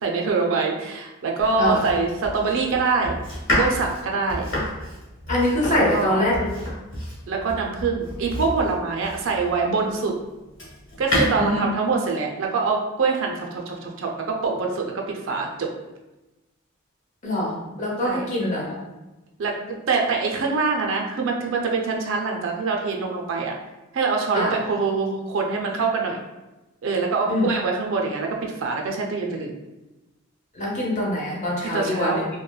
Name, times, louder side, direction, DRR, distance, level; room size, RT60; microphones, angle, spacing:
voice 1, 0.0-3.2 3.6-4.5 5.6-6.2 7.3-10.1 11.0-15.7 17.5-18.3 19.4-23.5 23.9-26.2 26.8-29.5 31.7-32.2, right 4 dB, 65° right, 1 dB, 0.4 m, -24 dB
Domestic sounds home sounds, 1.4-9.6 10.1-11.3, left 1 dB, 60° left, 1.0 m, -30 dB
voice 2, 5.3-6.3 11.4-11.6 17.2-17.5 17.8-18.8 24.3-24.6 27.3-27.5 30.5-32.3, left 1 dB, 35° left, -5 dB, 0.7 m, -24 dB
3.0 x 2.2 x 2.2 m, 1.0 s
head